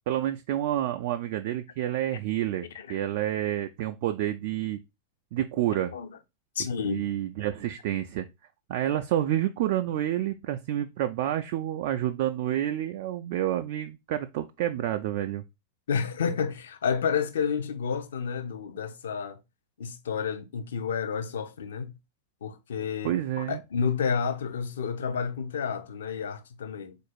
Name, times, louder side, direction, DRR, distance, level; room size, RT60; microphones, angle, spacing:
voice 1, 0.1-4.8 5.3-5.9 6.9-8.3 8.7-15.4 23.0-23.6, right 12 dB, 50° right, 0.3 m, -29 dB
voice 2, 6.6-7.1 15.9-19.4 19.8-21.9 22.4-27.0, left 6 dB, 65° left, 0.6 m, -30 dB
4.0 x 2.5 x 4.5 m
figure-of-eight pair, 90°, 0 cm